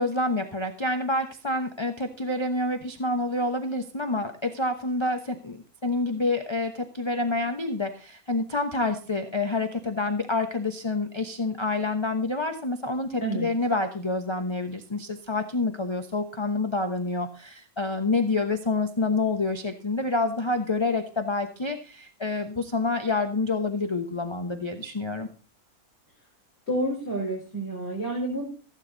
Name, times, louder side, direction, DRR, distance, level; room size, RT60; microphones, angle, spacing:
voice 1, 0.0-25.3, left 2 dB, 20° left, 6 dB, 1.0 m, -28 dB
voice 2, 26.7-28.4, right 1 dB, 45° left, -3 dB, 4.7 m, -29 dB
15.5 x 8.9 x 4.0 m, 0.38 s
omnidirectional pair, 1.6 m